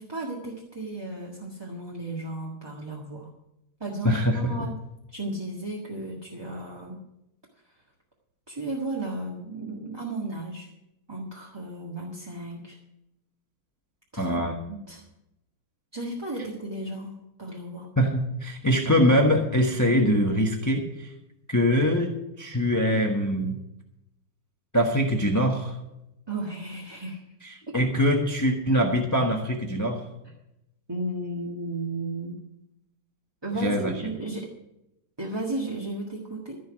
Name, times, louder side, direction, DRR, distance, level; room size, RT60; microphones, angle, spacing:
voice 1, 0.0-3.3 3.8-4.8 5.1-7.0 7.7-7.8 8.5-10.7 11.1-12.8 14.1-14.4 14.7-15.0 15.9-17.9 26.3-27.2 27.7-27.8 30.2-30.3 30.9-32.4 33.4-34.5 35.2-36.6, right 2 dB, 15° right, -2 dB, 1.5 m, -34 dB
voice 2, 4.0-4.7 14.2-14.5 18.0-21.1 21.5-23.6 24.7-25.8 27.4-30.0 33.6-33.9, equal, 10° left, 1 dB, 1.1 m, -23 dB
15.0 x 5.5 x 9.7 m, 0.87 s
omnidirectional pair, 2.1 m